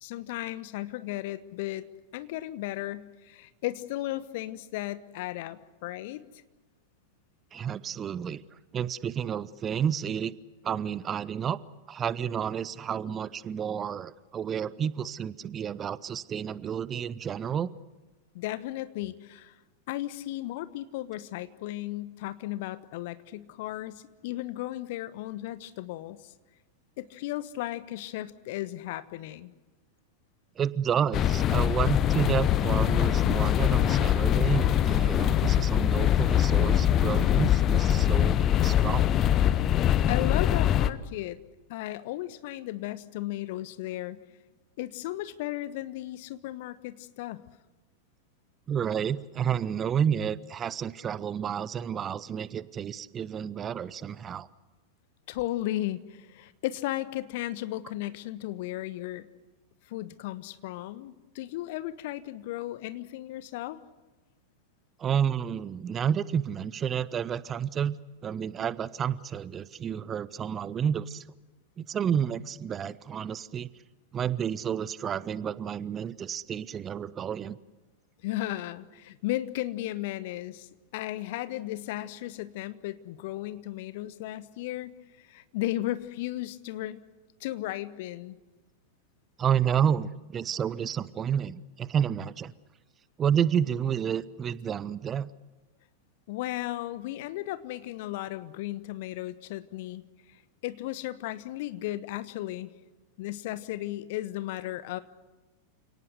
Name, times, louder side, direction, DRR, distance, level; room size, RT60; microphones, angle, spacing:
voice 1, 0.0-1.9 2.1-6.2 18.3-19.6 19.9-26.3 27.0-29.5 40.1-41.4 41.7-44.2 44.8-47.4 55.3-59.3 59.9-63.8 78.2-84.9 85.2-87.0 87.4-88.4 96.3-100.0 100.6-102.7 103.2-105.0, left 15 dB, 50° left, 14 dB, 1.2 m, -35 dB
voice 2, 7.5-8.4 8.7-10.3 10.6-11.6 11.9-17.7 30.6-38.4 38.6-39.0 48.7-54.5 65.0-71.2 71.8-73.7 74.1-77.6 89.4-92.5 93.2-95.3, right 8 dB, 25° right, 20 dB, 0.7 m, -30 dB
sound 1, 31.1-40.9, left 11 dB, 30° left, 1.0 m, -23 dB
29.0 x 18.0 x 8.1 m, 1.2 s
figure-of-eight pair, 90°, 0 cm